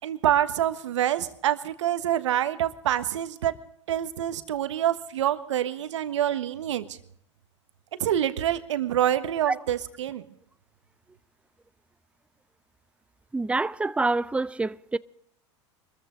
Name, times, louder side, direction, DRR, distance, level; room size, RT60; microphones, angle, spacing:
voice 1, 0.0-3.5 3.9-7.0 8.0-10.2, right 11 dB, 80° right, 1.4 m, -26 dB
voice 2, 13.3-15.0, right 3 dB, 10° right, 0.5 m, -26 dB
24.0 x 14.0 x 3.8 m
hypercardioid pair, 90°, 15 cm